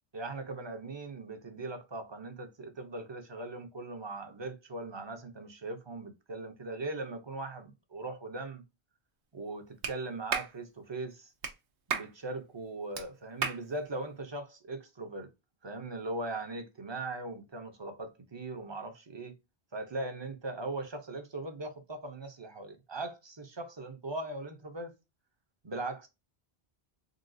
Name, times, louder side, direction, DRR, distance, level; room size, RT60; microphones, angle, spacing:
voice 1, 0.1-8.6 9.3-11.3 11.9-15.3 15.6-19.3 19.7-24.9 25.6-26.1, right 2 dB, 30° right, 0.6 m, -39 dB
Clapping, 9.8-10.0 10.3-10.5 11.4-11.5 11.9-12.1 13.0-13.1 13.4-13.6, right 6 dB, 70° right, 0.9 m, -32 dB
3.8 x 2.3 x 2.5 m
omnidirectional pair, 1.1 m